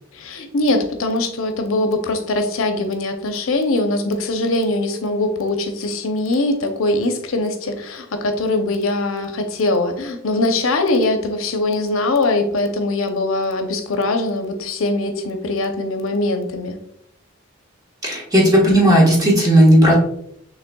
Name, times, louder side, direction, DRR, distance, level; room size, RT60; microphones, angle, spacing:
voice 1, 0.1-16.8, left 2 dB, 75° left, 6 dB, 0.6 m, -22 dB
voice 2, 18.0-19.9, equal, 20° right, -3 dB, 1.3 m, -13 dB
6.5 x 3.1 x 2.3 m, 0.75 s
head